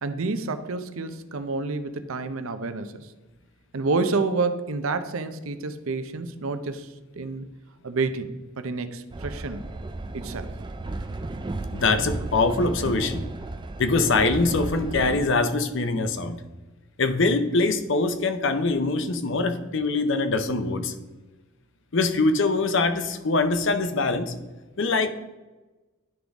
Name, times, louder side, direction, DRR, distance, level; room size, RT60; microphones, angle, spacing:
voice 1, 0.0-3.1 3.7-7.5 7.8-9.7 10.1-10.5, right 3 dB, 70° right, 10 dB, 0.6 m, -29 dB
Train, 9.1-15.3, right 2 dB, 20° right, 0.3 m, -34 dB
voice 2, 11.7-13.2 13.8-16.4 17.0-20.9 21.9-24.3 24.8-25.1, left 3 dB, 55° left, 9 dB, 0.7 m, -23 dB
11.5 x 3.8 x 3.5 m, 1.2 s
head